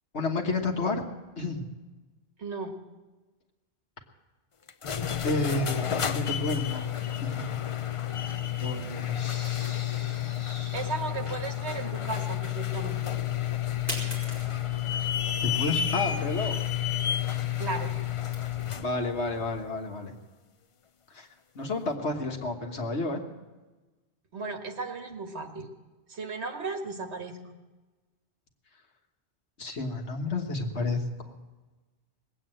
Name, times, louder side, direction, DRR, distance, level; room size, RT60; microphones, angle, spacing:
voice 1, 0.1-1.0 1.4-1.6 5.2-7.5 8.6-10.8 15.4-16.6 18.8-20.1 21.1-21.3 21.5-23.2 29.6-31.3, left 2 dB, 75° left, 2 dB, 1.8 m, -31 dB
voice 2, 2.4-2.7 10.7-13.1 17.6-17.9 24.3-25.7 26.1-27.4, right 4 dB, 75° right, 4 dB, 1.8 m, -35 dB
sound 1, 4.7-18.9, left 11 dB, 45° left, 0.4 m, -30 dB
sound 2, 12.7-19.6, equal, 15° left, 4.5 m, -44 dB
19.5 x 8.7 x 7.7 m, 1.2 s
omnidirectional pair, 1.1 m